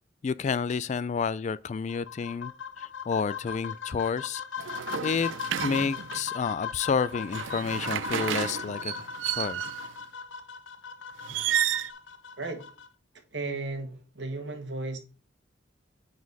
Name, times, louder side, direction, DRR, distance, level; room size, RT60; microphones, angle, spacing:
voice 1, 0.2-2.5 2.8-5.3 5.6-9.6, left 5 dB, 40° left, 0.3 m, -30 dB
sound 1, 1.9-12.9, left 6 dB, 90° left, 0.9 m, -39 dB
sound 2, 4.6-6.3 7.1-9.9 11.2-11.9, right 10 dB, 85° right, 0.5 m, -32 dB
voice 2, 12.4-12.7 13.3-15.0, right 3 dB, 65° right, 1.4 m, -35 dB
9.5 x 4.2 x 4.0 m
head